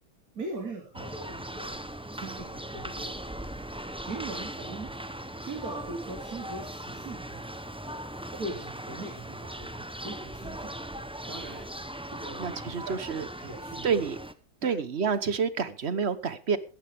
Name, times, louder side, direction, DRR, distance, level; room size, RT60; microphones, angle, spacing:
voice 1, 0.3-1.8 2.1-3.3 4.0-4.9 5.4-7.6 8.3-10.8 11.3-11.6 12.1-13.0 13.4-13.9 14.6-14.7, right 2 dB, 60° right, 1 dB, 3.2 m, -40 dB
sound 1, 0.9-14.3, right 1 dB, 5° right, 0.4 m, -39 dB
voice 2, 12.4-13.2 13.8-14.2 14.6-16.6, right 6 dB, 45° right, 14 dB, 1.1 m, -28 dB
16.5 x 14.5 x 3.5 m, 0.32 s
omnidirectional pair, 1.8 m